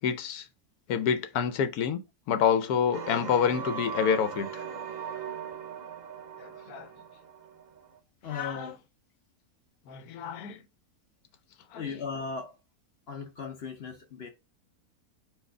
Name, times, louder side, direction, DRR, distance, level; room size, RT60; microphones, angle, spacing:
voice 1, 0.0-0.5 0.9-2.0 2.3-4.6 6.4-6.9 8.3-8.7 9.9-10.6 11.7-11.8, left 7 dB, 80° left, 1.1 m, -28 dB
sound 1, 2.9-8.0, right 6 dB, 85° right, 0.4 m, -39 dB
voice 2, 8.2-8.8 11.7-12.6 13.1-14.3, left 5 dB, 55° left, 0.7 m, -37 dB
4.6 x 2.6 x 4.3 m
omnidirectional pair, 1.6 m